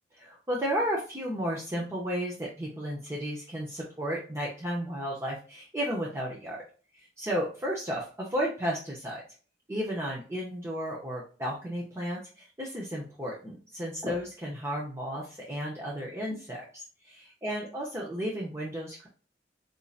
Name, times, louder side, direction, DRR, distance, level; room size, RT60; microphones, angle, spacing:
voice 1, 0.2-6.6 6.9-9.2 9.7-19.1, equal, 15° right, -3 dB, 0.7 m, -33 dB
5.1 x 2.8 x 2.4 m, 0.38 s
head